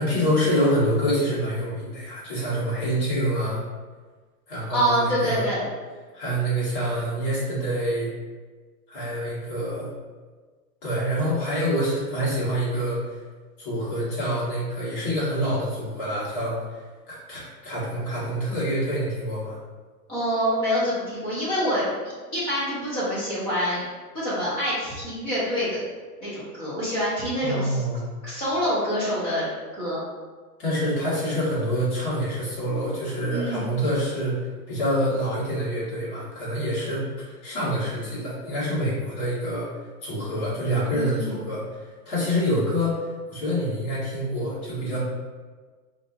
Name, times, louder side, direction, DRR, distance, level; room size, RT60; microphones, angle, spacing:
voice 1, 0.0-3.6 4.5-5.4 6.1-8.1 8.9-9.9 10.8-13.0 13.6-16.8 17.1-19.6 27.4-28.1 30.6-34.4 34.7-39.7 40.0-41.6 42.0-43.0 43.3-45.0, equal, 35° left, -9 dB, 1.4 m, -26 dB
voice 2, 4.7-5.6 20.1-23.8 24.1-25.8 26.2-27.8 28.2-29.4 29.7-30.0 33.3-33.7 40.9-41.4, equal, 10° left, -10 dB, 0.7 m, -26 dB
4.2 x 2.6 x 2.4 m, 1.4 s
hypercardioid pair, 160°, 48 cm